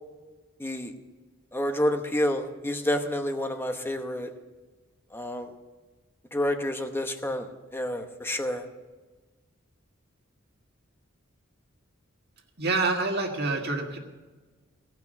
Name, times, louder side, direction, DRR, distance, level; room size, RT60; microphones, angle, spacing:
voice 1, 0.6-0.9 1.5-4.3 5.1-5.5 6.3-8.6, left 1 dB, 10° left, 6 dB, 0.9 m, -29 dB
voice 2, 12.6-14.0, right 3 dB, 55° right, 2 dB, 1.8 m, -27 dB
17.5 x 5.9 x 7.8 m, 1.3 s
head